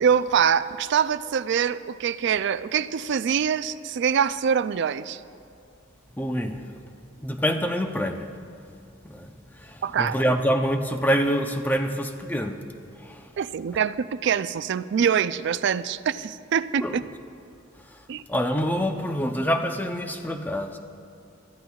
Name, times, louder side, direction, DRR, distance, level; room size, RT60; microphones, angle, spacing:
voice 1, 0.0-5.2 9.8-10.4 13.4-17.0 18.1-18.2, right 7 dB, 60° right, 14 dB, 0.3 m, -24 dB
voice 2, 6.2-6.7 7.2-8.3 9.0-12.6 13.0-13.3 16.8-16.9 17.9-18.0 18.3-20.8, equal, 10° left, 5 dB, 0.6 m, -26 dB
23.0 x 13.5 x 2.4 m, 2.5 s
head